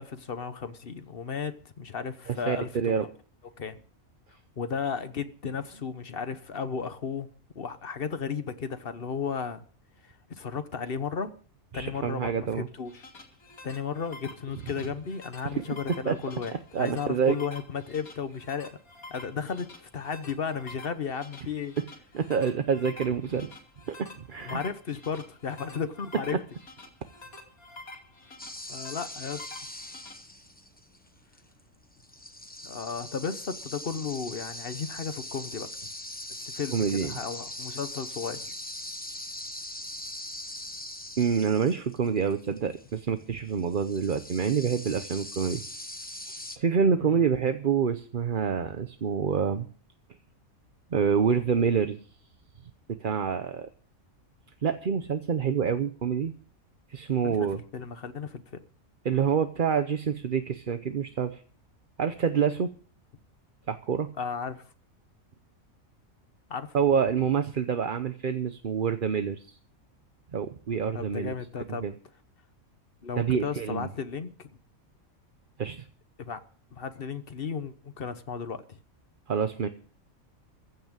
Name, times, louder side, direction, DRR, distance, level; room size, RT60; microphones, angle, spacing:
voice 1, 0.0-3.1 3.6-3.7 4.6-7.3 7.5-9.6 10.0-11.3 11.7-13.0 13.6-18.8 19.1-21.7 24.4-26.4 28.7-29.5 32.6-35.7 36.4-38.5 47.0-47.2 57.2-58.6 64.2-64.6 66.5-66.7 70.9-71.9 73.0-74.5 76.2-76.4 76.7-78.8, left 6 dB, 45° left, 1.1 m, -34 dB
voice 2, 2.3-3.0 11.7-12.7 15.4-15.6 16.0-16.1 16.7-17.3 22.1-23.5 24.0-24.6 36.7-37.1 41.2-45.6 46.3-49.7 50.9-52.0 53.0-53.7 54.6-56.3 56.9-57.6 59.0-61.4 62.0-62.7 63.7-64.1 66.7-69.5 70.3-71.3 71.7-71.9 73.2-73.9 75.6-75.8 79.3-79.7, right 7 dB, 45° right, 0.8 m, -27 dB
sound 1, 12.7-30.1, left 2 dB, 90° left, 3.1 m, -48 dB
sound 2, 28.4-31.0 31.3-31.6 32.0-46.6, left 1 dB, 10° left, 0.8 m, -41 dB
15.0 x 6.0 x 8.9 m
omnidirectional pair, 1.5 m